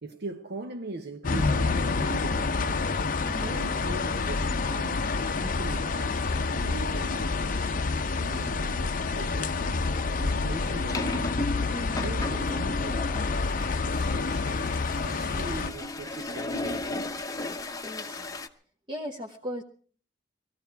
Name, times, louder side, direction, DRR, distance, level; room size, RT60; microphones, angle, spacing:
voice 1, 0.0-2.9 3.3-5.1 5.4-11.4 12.0-13.5 13.9-17.3, right 2 dB, 55° right, 0.8 m, -41 dB
sound 1, 1.2-15.7, left 4 dB, 45° left, 0.6 m, -28 dB
voice 2, 3.2-3.6 11.7-12.1 17.8-18.3 18.9-19.6, equal, 25° right, 1.0 m, -37 dB
sound 2, 7.7-7.8 8.3-8.5 9.6-18.5, left 2 dB, 20° left, 0.8 m, -36 dB
19.5 x 14.5 x 4.6 m
head